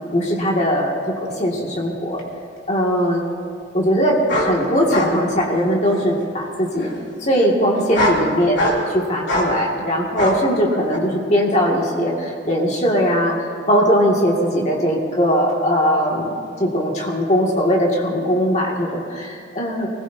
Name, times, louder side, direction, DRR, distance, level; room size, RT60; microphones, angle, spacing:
voice 1, 0.1-2.2 2.7-3.2 3.7-6.9 7.2-8.6 8.9-13.4 13.7-16.3 16.6-19.9, equal, 35° left, -2 dB, 2.2 m, -19 dB
sound 1, 2.2-2.3 4.3-4.5 4.9-5.1 5.5-6.1 6.8-6.9 7.8-8.2 8.6-8.9 9.3-9.5 10.2-10.4 10.9-11.0, left 1 dB, 75° left, 3.0 m, -22 dB
24.0 x 20.5 x 2.8 m, 2.3 s
head